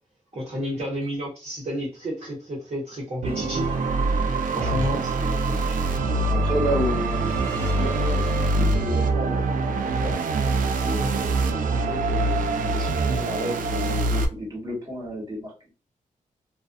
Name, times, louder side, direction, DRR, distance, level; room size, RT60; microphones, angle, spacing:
voice 1, 0.3-3.7 4.4-5.3 5.6-5.8, equal, 50° right, 0.9 m, -31 dB
sound 1, 3.2-8.5, right 4 dB, 15° left, 1.1 m, -41 dB
sound 2, 3.2-14.3, right 2 dB, 85° right, 0.4 m, -24 dB
voice 2, 4.6-5.6 6.3-10.2 10.7-15.7, equal, 30° right, 1.2 m, -32 dB
2.4 x 2.2 x 2.5 m
wide cardioid pair, 125°, 14 cm